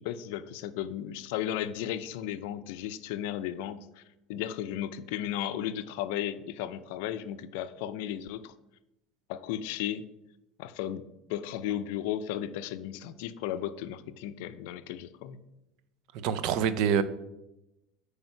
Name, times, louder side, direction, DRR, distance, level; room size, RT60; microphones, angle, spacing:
voice 1, 0.0-4.0 4.3-8.5 9.3-10.0 10.6-11.0 11.3-15.4, left 11 dB, 80° left, 0.5 m, -35 dB
voice 2, 16.1-17.0, right 8 dB, 65° right, 0.5 m, -26 dB
8.8 x 3.4 x 5.8 m
supercardioid pair, 105°, 0 cm